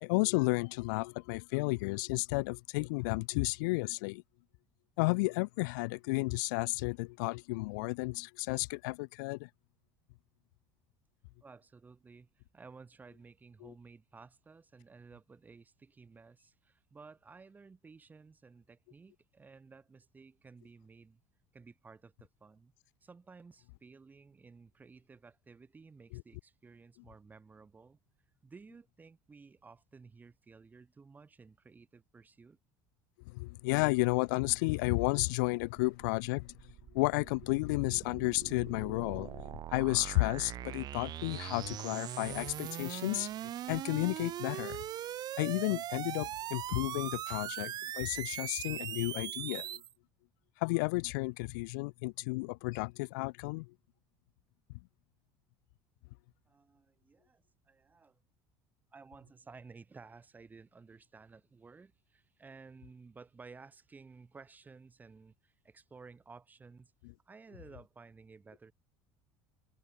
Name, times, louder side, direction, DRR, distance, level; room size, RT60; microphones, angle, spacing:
voice 1, 0.0-4.2 5.0-9.5 13.6-13.7 26.1-26.2 33.3-44.8 45.4-49.8 50.6-53.7, left 26 dB, 90° left, 1.2 m, -32 dB
voice 2, 11.4-21.2 21.5-22.7 23.0-28.0 28.4-32.6 56.5-58.2 58.9-66.9 67.3-68.7, right 4 dB, 15° right, 5.8 m, -55 dB
sound 1, 35.8-49.9, right 12 dB, 45° right, 2.7 m, -41 dB
cardioid pair, 140°, 10 cm